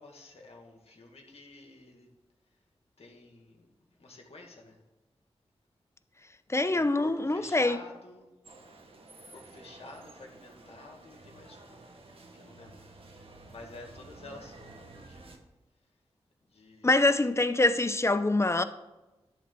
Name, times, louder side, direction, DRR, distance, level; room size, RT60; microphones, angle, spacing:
voice 1, 0.0-2.1 3.0-4.8 6.7-8.3 9.3-11.8 12.4-12.8 13.5-15.2 16.5-17.0, left 2 dB, 70° left, 2.1 m, -50 dB
voice 2, 6.5-7.8 16.8-18.6, left 2 dB, 25° left, 0.7 m, -25 dB
sound 1, 8.4-15.4, right 2 dB, 60° right, 1.4 m, -52 dB
11.5 x 4.0 x 7.0 m
cardioid pair, 50°, 11 cm